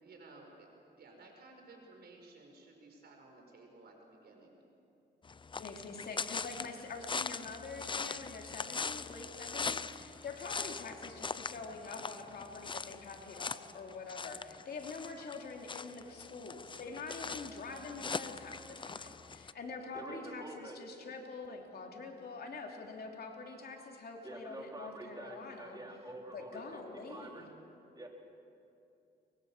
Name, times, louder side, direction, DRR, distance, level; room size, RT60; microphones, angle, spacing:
voice 1, 0.0-4.6, right 2 dB, 65° right, 2 dB, 5.5 m, -56 dB
sound 1, 5.3-19.5, left 5 dB, 25° left, 0.6 m, -41 dB
voice 2, 5.6-25.8 26.3-27.5, left 4 dB, 60° left, 1 dB, 3.1 m, -45 dB
voice 3, 19.9-20.8 24.2-26.8 27.1-27.5 28.0-28.1, right 2 dB, 20° right, 0 dB, 3.8 m, -47 dB
24.0 x 22.0 x 7.4 m, 2.7 s
cardioid pair, 100°, 18 cm